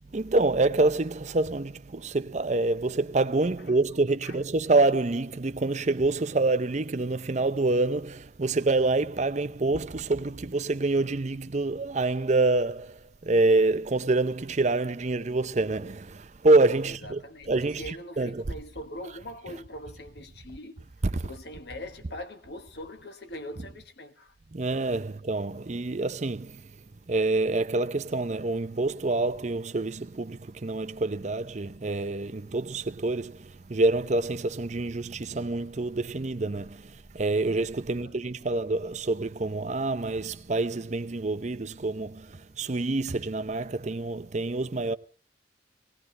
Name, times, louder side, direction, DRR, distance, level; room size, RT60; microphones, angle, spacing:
voice 1, 0.1-17.2 17.5-18.4 21.1-21.3 24.5-26.7 27.1-45.0, right 2 dB, 40° right, 0.6 m, -27 dB
voice 2, 16.8-20.9 21.2-24.3 37.9-38.5, left 1 dB, 60° left, 1.4 m, -42 dB
18.0 x 17.5 x 3.3 m
head